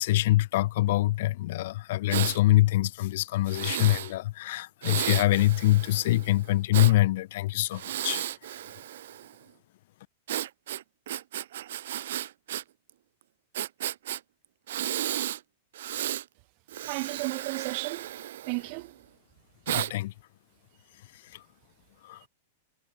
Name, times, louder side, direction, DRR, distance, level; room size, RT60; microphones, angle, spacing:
voice 1, 0.0-8.3 19.9-20.1 22.0-22.2, left 16 dB, 55° left, 0.6 m, -24 dB
Breathing, 2.1-2.4 3.5-4.1 4.8-6.9 7.7-9.3 10.3-12.6 12.9-13.0 13.5-14.2 14.7-15.4 15.7-16.2 16.7-18.9 19.7-19.9, right 12 dB, 70° right, 0.6 m, -33 dB
voice 2, 16.8-18.2 18.4-18.9 22.1-22.3, right 40 dB or more, 40° right, 2.9 m, -34 dB
supercardioid pair, 165°, 0 cm